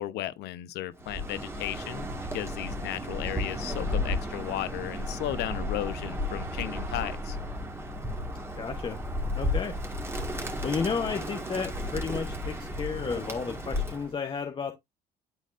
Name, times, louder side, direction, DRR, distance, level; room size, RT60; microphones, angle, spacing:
voice 1, 0.0-7.4, left 13 dB, 80° left, 0.8 m, -35 dB
Bird, 1.0-14.1, left 1 dB, 15° right, 1.8 m, -33 dB
voice 2, 8.6-9.0 9.3-9.8 10.6-14.7, left 5 dB, 30° left, 0.9 m, -32 dB
11.5 x 4.2 x 2.5 m
cardioid pair, 110°, 17 cm